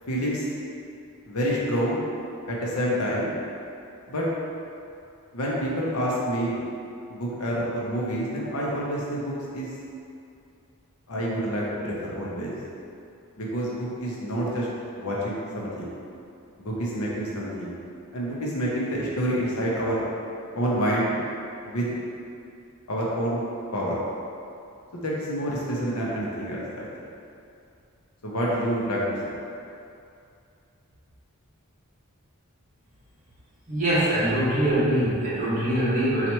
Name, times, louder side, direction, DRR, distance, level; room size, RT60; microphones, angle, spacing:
voice 1, 0.1-0.4 1.2-2.0 2.5-3.3 4.1-4.3 5.3-6.6 7.1-9.7 11.1-12.5 13.4-14.7 14.9-15.9 16.6-17.7 18.1-20.0 20.5-21.1 21.6-22.0 22.9-23.4 23.7-24.0 24.9-26.9 28.2-29.3, equal, 85° left, -5 dB, 0.8 m, -28 dB
voice 2, 33.7-36.3, right 1 dB, 35° right, -10 dB, 1.1 m, -23 dB
4.2 x 2.4 x 2.9 m, 2.6 s
head